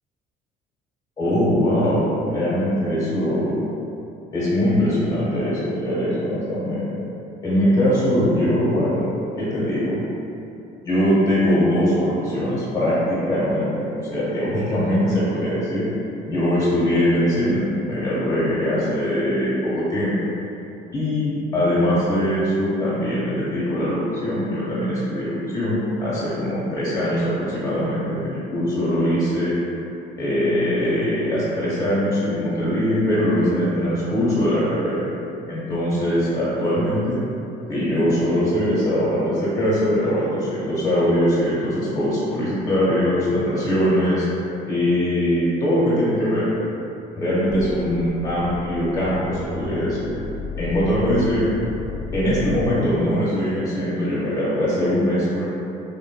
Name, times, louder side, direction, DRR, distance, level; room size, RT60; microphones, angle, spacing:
voice 1, 1.2-3.5 4.3-7.1 7.4-9.1 9.4-10.0 10.8-15.9 16.3-20.1 20.9-29.6 30.2-35.1 35.5-37.2 37.7-44.3 44.7-46.5 47.2-50.1 50.6-51.5 52.1-55.5, equal, 20° left, -10 dB, 1.1 m, -21 dB
sound 1, 47.5-52.7, left 4 dB, 60° left, 0.6 m, -33 dB
3.6 x 2.4 x 2.2 m, 2.8 s
cardioid pair, 110°, 17 cm